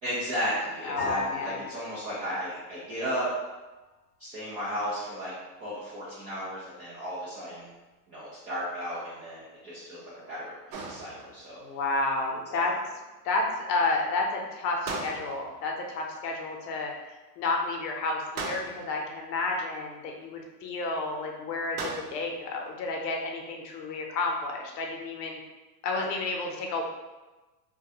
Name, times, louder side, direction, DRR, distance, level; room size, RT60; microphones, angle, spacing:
voice 1, 0.0-3.3 4.2-7.7 8.1-10.0 10.3-10.5 10.8-11.6 12.5-12.7 25.9-26.1, equal, 15° right, -10 dB, 0.3 m, -34 dB
voice 2, 0.8-1.6 11.6-12.7 13.2-25.4 25.8-26.8, left 3 dB, 75° left, 1 dB, 0.8 m, -31 dB
sound 1, 1.0-3.4, left 5 dB, 35° left, 0.7 m, -39 dB
sound 2, 10.7-11.6 14.8-15.7 18.4-19.1 21.8-22.4, right 3 dB, 60° right, 0.7 m, -37 dB
2.3 x 2.2 x 2.7 m, 1.2 s
hypercardioid pair, 115°, 49 cm